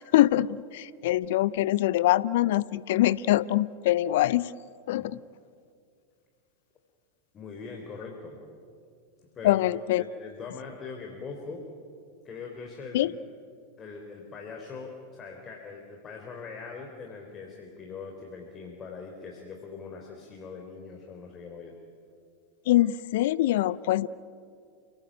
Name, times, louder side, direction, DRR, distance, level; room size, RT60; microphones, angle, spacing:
voice 1, 0.0-4.5 4.9-5.2 9.4-10.0 12.9-13.1 22.7-24.1, left 15 dB, 60° left, 20 dB, 0.6 m, -24 dB
voice 2, 7.3-8.4 9.3-9.6 10.0-11.7 12.2-13.1 13.8-21.8, left 4 dB, 30° left, 1 dB, 3.9 m, -42 dB
29.5 x 18.5 x 9.0 m, 2.3 s
figure-of-eight pair, 90°, 0 cm